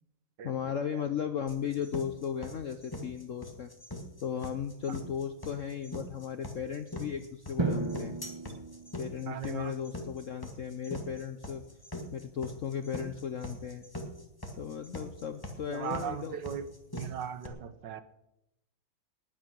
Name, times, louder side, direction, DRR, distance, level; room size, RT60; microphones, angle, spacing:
voice 1, 0.4-3.7 4.2-8.1 9.0-11.6 12.1-13.8 14.6-16.4, left 8 dB, 60° left, 9 dB, 0.8 m, -36 dB
sound 1, 1.5-17.5, left 1 dB, 10° left, 1.8 m, -42 dB
Drum, 7.6-9.5, right 3 dB, 20° right, 0.8 m, -34 dB
voice 2, 9.3-9.7 15.7-16.7 16.9-18.0, right 8 dB, 65° right, 12 dB, 1.5 m, -38 dB
19.5 x 9.4 x 6.1 m, 0.87 s
omnidirectional pair, 2.2 m